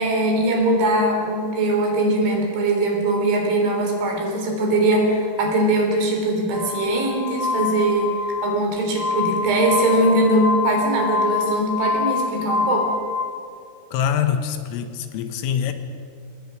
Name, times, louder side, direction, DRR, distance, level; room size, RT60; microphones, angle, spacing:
voice 1, 0.0-8.2 8.4-13.0, right 1 dB, 65° right, 6.0 m, -21 dB
Glass, 6.5-13.2, left 5 dB, 15° right, 4.1 m, -25 dB
voice 2, 13.9-15.7, left 8 dB, 85° left, 3.9 m, -24 dB
26.0 x 19.0 x 6.4 m
omnidirectional pair, 5.8 m